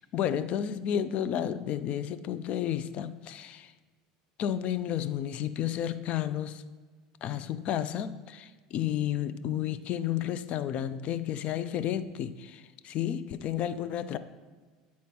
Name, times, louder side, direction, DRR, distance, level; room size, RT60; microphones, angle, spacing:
voice 1, 0.1-3.7 4.4-6.6 7.2-14.2, left 10 dB, 50° left, 13 dB, 0.5 m, -32 dB
9.3 x 4.2 x 5.9 m, 1.4 s
supercardioid pair, 100°, 3 cm